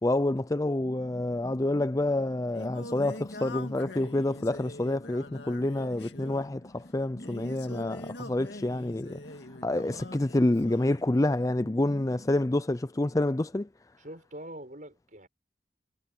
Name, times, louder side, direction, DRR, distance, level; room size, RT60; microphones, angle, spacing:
voice 1, 0.0-9.2 9.6-13.7, left 1 dB, 20° left, 0.4 m, -28 dB
sound 1, 0.8-13.5, left 1 dB, 45° left, 3.7 m, -49 dB
Singing, 2.0-11.1, left 2 dB, 80° left, 2.3 m, -44 dB
voice 2, 14.0-15.3, right 1 dB, 45° right, 7.1 m, -44 dB
head